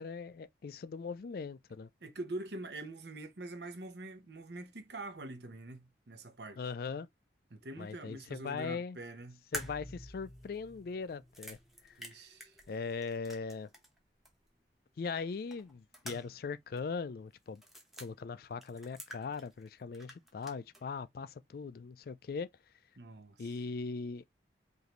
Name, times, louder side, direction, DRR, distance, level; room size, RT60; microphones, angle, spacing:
voice 1, 0.0-1.9 6.6-7.1 7.8-9.0 9.5-11.6 11.8-12.0 12.7-13.7 15.0-17.6 18.0-22.5 23.4-24.2, left 5 dB, 55° left, 0.3 m, -40 dB
voice 2, 2.0-6.6 7.5-9.4 12.0-12.6 23.0-23.5, right 2 dB, 65° right, 0.9 m, -44 dB
sound 1, 9.5-14.0 14.2-14.3 15.5-16.5 16.8-16.9 17.5-18.1 18.6-19.7 19.9-20.8, equal, ahead, 1.0 m, -47 dB
5.0 x 2.7 x 3.0 m
head